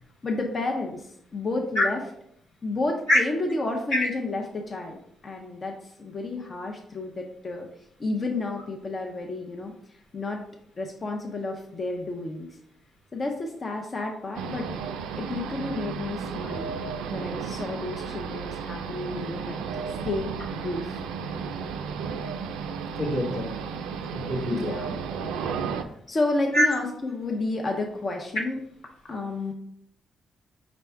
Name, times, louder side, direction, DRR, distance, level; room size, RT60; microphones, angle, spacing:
voice 1, 0.2-2.0 2.6-5.0 5.2-7.7 8.0-10.4 10.8-12.5 13.1-14.7 15.2-16.8 17.1-19.6 20.0-21.0 24.4-25.0 25.7-28.6 29.0-29.5, left 2 dB, 45° left, 1 dB, 0.6 m, -31 dB
sound 1, 14.3-25.8, right 6 dB, 85° right, 0.3 m, -33 dB
voice 2, 23.0-23.5 24.1-24.7 26.5-26.6, left 1 dB, 85° left, -6 dB, 1.6 m, -24 dB
5.1 x 2.2 x 4.4 m, 0.71 s
supercardioid pair, 55°, 0 cm